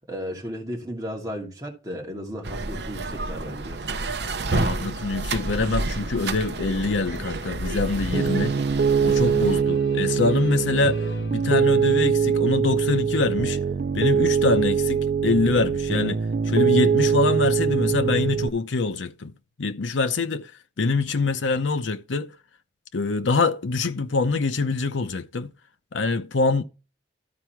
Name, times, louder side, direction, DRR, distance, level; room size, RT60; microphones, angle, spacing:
voice 1, 0.1-3.8, equal, 20° right, 2.6 m, -34 dB
sound 1, 2.4-9.6, right 2 dB, 65° right, 0.8 m, -30 dB
voice 2, 4.5-8.5 9.0-11.0 11.3-13.6 13.9-19.3 19.6-20.5 20.8-22.3 22.9-25.5 25.9-26.6, left 3 dB, 90° left, 0.7 m, -24 dB
Piano, 8.1-18.5, right 6 dB, 50° right, 0.4 m, -22 dB
sound 2, 8.5-13.2, left 3 dB, 65° left, 1.9 m, -43 dB
13.5 x 4.6 x 4.5 m
head